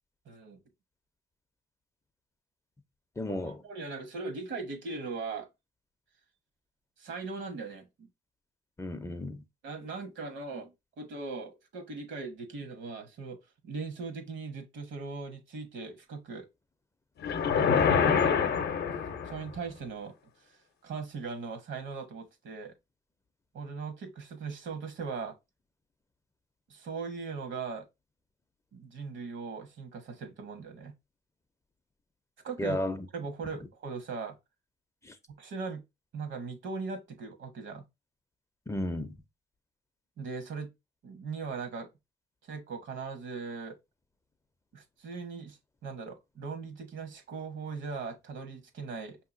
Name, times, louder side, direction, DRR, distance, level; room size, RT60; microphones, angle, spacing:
voice 1, 0.3-0.6 3.3-5.5 7.0-8.1 9.6-16.5 17.8-18.4 19.2-20.1 20.8-22.7 23.5-25.3 26.7-27.9 28.7-30.9 32.4-34.4 35.4-35.8 36.1-37.8 40.2-40.7 41.0-41.9 42.4-43.8 44.7-49.2, right 4 dB, 70° right, 1.1 m, -39 dB
voice 2, 3.2-3.6 8.8-9.4 32.6-33.0 35.1-35.2 38.7-39.1, left 1 dB, 15° left, 0.5 m, -33 dB
sound 1, 17.2-19.5, left 6 dB, 55° left, 0.6 m, -26 dB
5.5 x 2.8 x 2.5 m
cardioid pair, 90°, 20 cm